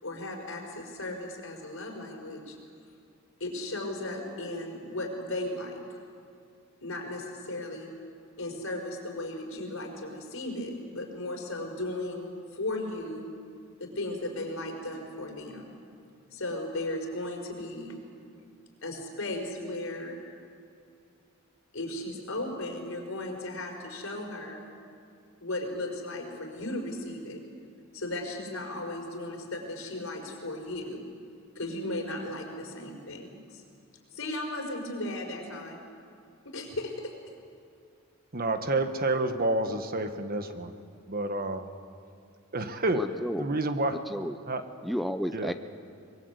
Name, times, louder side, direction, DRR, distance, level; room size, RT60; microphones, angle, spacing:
voice 1, 0.0-2.6 3.4-5.8 6.8-7.9 8.4-13.3 13.8-15.7 16.3-18.0 18.8-20.2 21.7-24.6 25.4-27.4 27.9-31.0 31.5-33.6 34.1-35.8 36.4-37.1, left 1 dB, 75° left, 2 dB, 4.9 m, -36 dB
voice 2, 38.3-40.7 41.1-41.7 42.5-43.0 43.4-44.0 44.5-44.6 45.3-45.5, right 2 dB, 45° right, 8 dB, 1.4 m, -29 dB
voice 3, 42.9-43.5 43.9-44.4 44.8-45.5, equal, ahead, 8 dB, 0.5 m, -32 dB
24.0 x 22.0 x 8.2 m, 2.4 s
head